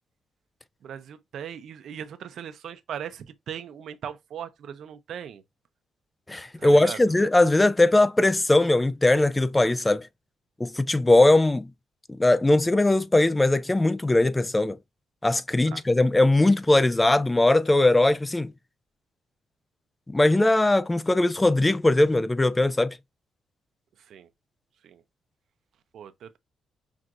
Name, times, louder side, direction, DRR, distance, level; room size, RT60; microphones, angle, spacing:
voice 1, 0.8-5.4 6.6-7.0 15.5-15.8 24.1-24.3 24.8-25.0 25.9-26.4, right 9 dB, 65° right, 0.6 m, -39 dB
voice 2, 6.3-10.1 10.6-11.7 12.1-14.8 15.2-18.5 20.1-23.0, left 2 dB, 15° left, 0.4 m, -20 dB
6.1 x 2.6 x 2.5 m
cardioid pair, 90°, 0 cm